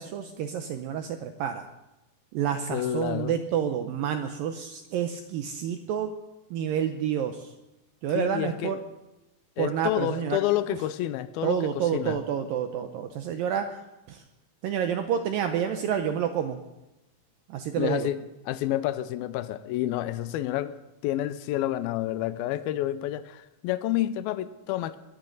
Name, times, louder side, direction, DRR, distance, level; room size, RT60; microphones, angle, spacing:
voice 1, 0.0-1.7 2.3-6.1 6.5-7.5 8.0-8.8 9.6-10.4 10.7-10.8 11.4-13.8 14.1-14.2 14.6-16.6 17.5-18.1, right 8 dB, 80° right, 7 dB, 2.1 m, -29 dB
voice 2, 2.7-3.3 8.2-8.7 9.6-11.6 11.9-12.2 17.8-18.2 18.5-20.8 21.0-25.0, left 13 dB, 80° left, 13 dB, 2.2 m, -29 dB
22.5 x 14.5 x 4.0 m, 0.95 s
omnidirectional pair, 4.9 m